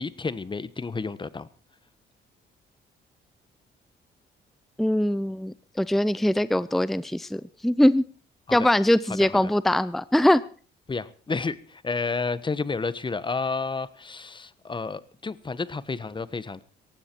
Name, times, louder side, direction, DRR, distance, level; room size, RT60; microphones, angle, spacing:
voice 1, 0.0-1.5 8.5-8.7 9.2-9.4 10.9-16.6, left 4 dB, 25° left, 1.2 m, -31 dB
voice 2, 4.8-8.0 8.5-10.4, left 1 dB, ahead, 0.6 m, -22 dB
18.0 x 15.5 x 4.6 m
cardioid pair, 90°, 20 cm